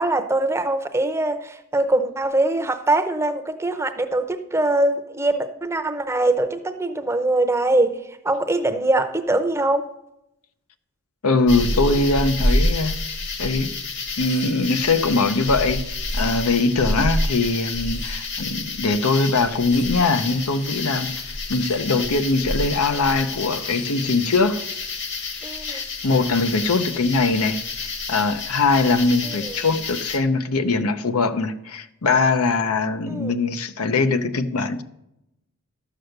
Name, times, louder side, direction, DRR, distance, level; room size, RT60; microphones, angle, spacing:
voice 1, 0.0-8.0 8.2-9.8 25.4-25.8 29.2-29.6 33.1-33.3, right 2 dB, 10° right, 0.7 m, -22 dB
voice 2, 11.2-12.9 13.4-13.7 14.2-21.1 21.5-24.6 25.7-34.8, left 3 dB, 85° left, 0.8 m, -21 dB
sound 1, 11.5-30.2, left 2 dB, 55° left, 1.5 m, -28 dB
13.0 x 6.3 x 6.6 m
head